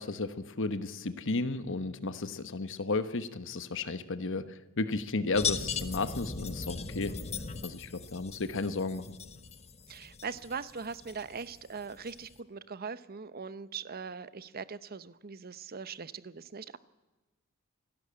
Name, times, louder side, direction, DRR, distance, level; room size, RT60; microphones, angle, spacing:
voice 1, 0.0-7.2 7.6-9.2, left 3 dB, 60° left, 12 dB, 1.1 m, -33 dB
sound 1, 5.3-12.4, left 5 dB, 30° left, 1.1 m, -39 dB
voice 2, 9.9-16.8, right 5 dB, 45° right, 15 dB, 0.8 m, -41 dB
27.5 x 12.5 x 8.6 m, 1.2 s
head